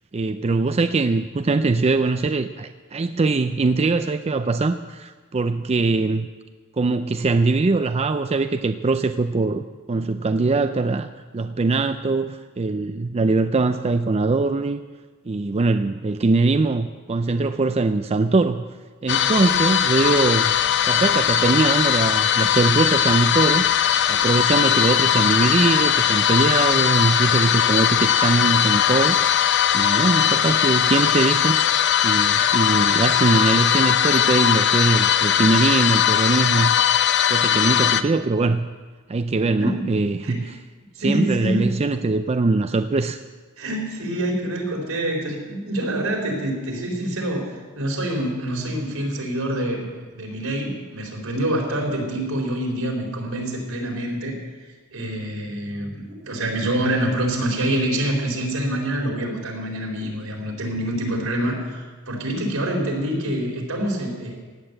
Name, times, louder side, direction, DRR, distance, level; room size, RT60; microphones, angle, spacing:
voice 1, 0.1-6.3 6.8-14.8 15.3-18.7 19.0-20.5 20.9-23.6 24.1-29.2 29.7-31.6 32.0-36.8 37.3-38.7 39.1-40.4 41.0-43.2, right 3 dB, 30° right, 9 dB, 0.4 m, -22 dB
sound 1, 19.1-38.0, left 10 dB, 55° left, 0.6 m, -19 dB
voice 2, 40.9-41.7 43.6-54.4 54.9-64.4, right 1 dB, 80° right, 0 dB, 4.0 m, -26 dB
16.5 x 9.7 x 8.0 m, 1.4 s
head